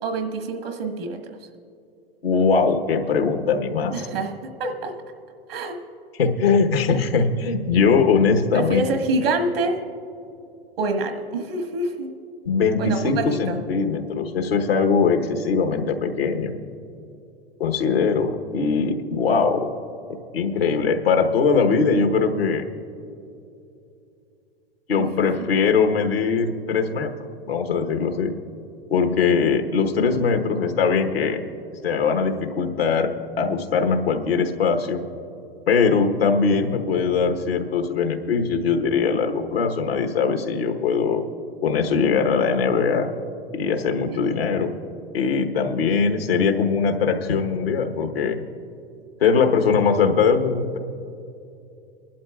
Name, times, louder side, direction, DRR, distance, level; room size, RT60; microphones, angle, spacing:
voice 1, 0.0-1.4 3.9-4.9 5.5-5.8 8.5-9.8 10.8-12.1 12.8-13.6 25.0-25.5 44.1-44.2, right 2 dB, 75° right, 5 dB, 1.6 m, -26 dB
voice 2, 2.2-3.9 6.2-8.8 12.5-16.5 17.6-19.7 20.3-22.6 24.9-27.1 27.5-28.3 28.9-31.4 31.8-33.1 33.4-35.0 35.7-41.2 41.6-43.1 43.5-44.7 45.1-48.4 49.2-50.8, left 5 dB, 85° left, 4 dB, 1.2 m, -21 dB
23.5 x 12.0 x 2.4 m, 2.6 s
hypercardioid pair, 100°, 29 cm